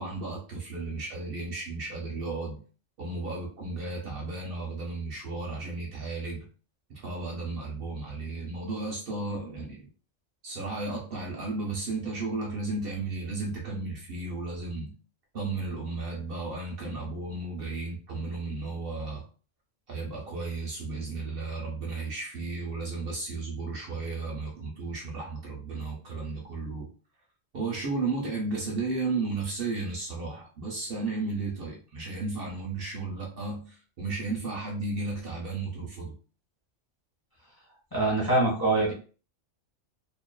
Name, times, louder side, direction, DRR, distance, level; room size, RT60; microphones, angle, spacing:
voice 1, 0.0-2.6 3.0-6.5 6.9-9.8 10.4-14.9 15.3-19.2 19.9-26.9 27.5-36.1, right 3 dB, 60° right, -1 dB, 0.7 m, -34 dB
voice 2, 37.9-38.9, right 2 dB, 25° left, -4 dB, 0.6 m, -24 dB
2.4 x 2.3 x 2.2 m, 0.38 s
omnidirectional pair, 1.2 m